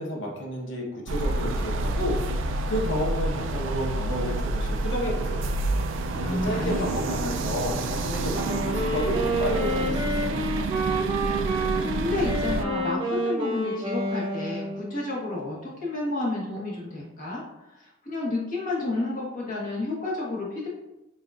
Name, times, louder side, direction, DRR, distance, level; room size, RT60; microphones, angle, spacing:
voice 1, 0.0-2.2 2.7-5.5 6.1-10.4, left 1 dB, 80° left, -1 dB, 1.0 m, -31 dB
sound 1, 1.1-12.6, right 2 dB, 85° right, 0.3 m, -28 dB
voice 2, 6.2-7.1 11.5-17.4 18.0-20.7, left 2 dB, 45° left, -5 dB, 1.2 m, -31 dB
Wind instrument woodwind instrument, 8.3-15.1, right 1 dB, 20° right, 0.7 m, -29 dB
6.3 x 2.4 x 2.3 m, 0.93 s
head